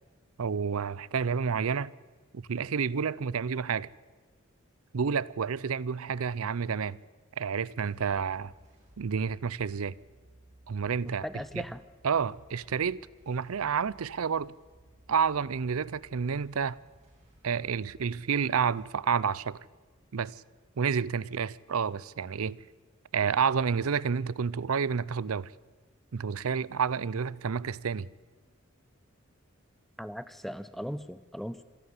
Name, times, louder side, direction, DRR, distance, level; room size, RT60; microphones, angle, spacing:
voice 1, 0.4-1.9 2.3-3.9 4.9-7.0 7.4-8.5 9.0-10.0 10.7-11.3 11.5-11.6 12.0-13.0 13.3-14.5 15.1-16.8 17.4-19.6 20.1-20.3 20.8-22.6 23.1-25.5 26.1-28.1, right 6 dB, 85° right, 0.5 m, -29 dB
sound 1, 7.0-21.6, right 1 dB, 30° right, 7.0 m, -60 dB
voice 2, 11.0-11.8 30.0-31.6, equal, ahead, 0.7 m, -38 dB
26.5 x 11.5 x 9.7 m
head